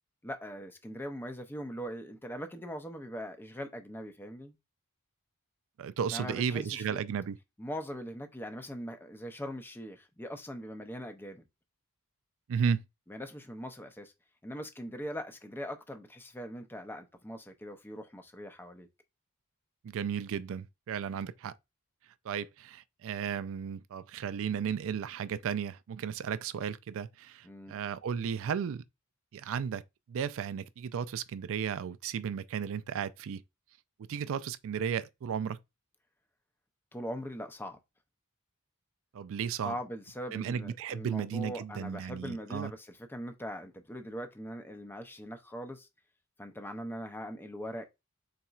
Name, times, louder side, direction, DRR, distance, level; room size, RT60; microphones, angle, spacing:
voice 1, 0.2-4.5 6.1-7.0 7.6-11.4 13.1-14.1 14.4-18.9 27.4-27.7 36.9-37.8 39.5-45.9 46.4-47.8, equal, 10° left, 0.5 m, -41 dB
voice 2, 5.8-7.4 12.5-12.8 19.8-21.5 22.2-28.8 29.3-29.8 30.1-33.4 34.1-35.6 39.1-39.7 40.3-42.7, right 7 dB, 65° right, 0.3 m, -34 dB
4.2 x 3.9 x 2.4 m
head